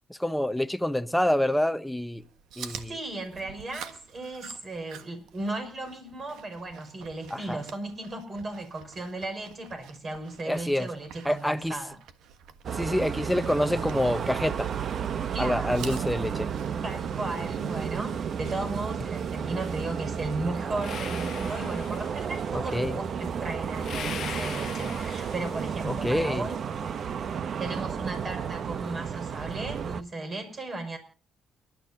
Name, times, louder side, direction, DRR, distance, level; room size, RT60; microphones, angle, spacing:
voice 1, 0.1-2.2 2.6-3.0 7.3-7.6 10.5-10.9 11.2-11.8 12.7-14.7 15.4-16.5 22.7-23.0 25.8-26.5, left 1 dB, 5° left, 0.9 m, -27 dB
Chewing mastication, 2.2-18.1, right 8 dB, 90° right, 1.4 m, -49 dB
voice 2, 2.8-12.0 15.3-16.0 16.8-26.5 27.6-31.0, right 2 dB, 40° right, 6.1 m, -36 dB
sound 1, 12.6-30.0, right 7 dB, 55° right, 0.9 m, -32 dB
sound 2, 20.8-22.4 23.8-25.9, left 9 dB, 65° left, 0.6 m, -40 dB
30.0 x 12.0 x 2.7 m
cardioid pair, 90°, 0 cm